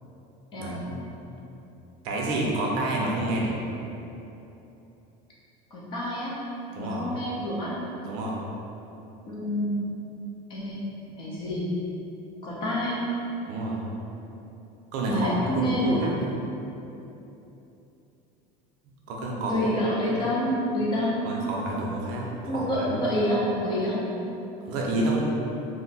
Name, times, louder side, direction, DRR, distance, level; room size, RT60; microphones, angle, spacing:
voice 1, 0.6-1.0 2.0-3.6 6.7-7.0 8.1-8.4 13.5-13.8 14.9-16.3 19.1-19.6 20.1-20.2 21.2-23.0 24.6-25.2, right 2 dB, 60° right, -2 dB, 0.6 m, -29 dB
voice 2, 5.7-6.3 6.8-7.8 9.2-9.8 10.5-10.9 11.2-11.7 12.4-13.0 15.1-16.0 19.5-21.3 22.5-24.1, equal, 30° left, -6 dB, 0.5 m, -27 dB
2.6 x 2.2 x 4.0 m, 3.0 s
cardioid pair, 175°, 17 cm